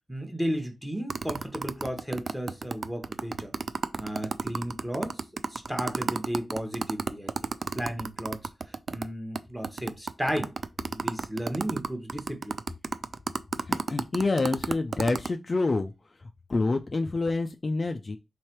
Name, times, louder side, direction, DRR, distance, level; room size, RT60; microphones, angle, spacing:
voice 1, 0.1-3.5 4.0-5.2 5.5-7.3 7.7-8.4 8.9-10.6 10.9-12.6, equal, 5° right, 0.9 m, -34 dB
sound 1, 1.1-9.1 9.4-9.5 9.6-15.3, right 4 dB, 55° right, 0.3 m, -31 dB
voice 2, 13.6-15.9 16.2-18.2, left 3 dB, 35° left, 0.3 m, -27 dB
3.4 x 3.2 x 4.3 m
wide cardioid pair, 160°, 0 cm